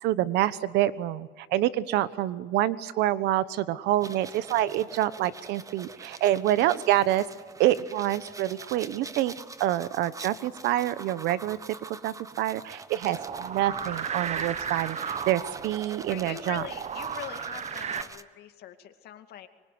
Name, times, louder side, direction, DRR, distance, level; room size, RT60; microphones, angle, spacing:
voice 1, 0.0-7.2 7.6-9.3 9.6-11.6 11.9-16.6, right 14 dB, 85° right, 16 dB, 1.1 m, -27 dB
sound 1, 4.0-18.2, right 3 dB, 20° right, 1.2 m, -45 dB
sound 2, 13.0-18.0, right 7 dB, 40° right, 1.3 m, -35 dB
voice 2, 16.1-19.5, left 11 dB, 70° left, 7 dB, 2.4 m, -42 dB
25.0 x 24.5 x 9.6 m, 1.4 s
cardioid pair, 110°, 17 cm